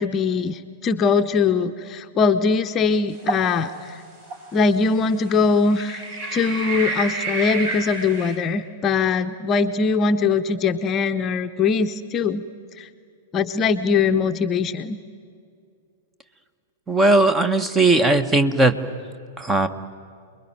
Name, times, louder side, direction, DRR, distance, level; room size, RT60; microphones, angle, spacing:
voice 1, 0.0-4.0 4.5-12.4 12.8-12.9 13.3-15.0, left 5 dB, 25° left, 7 dB, 0.8 m, -21 dB
sound 1, 3.2-3.5 4.3-4.4 5.7-8.4, right 3 dB, 45° right, 6.1 m, -29 dB
voice 2, 16.9-18.8 19.4-19.7, right 2 dB, 15° right, 12 dB, 1.2 m, -18 dB
28.5 x 22.0 x 9.3 m, 2.3 s
figure-of-eight pair, 100°, 0 cm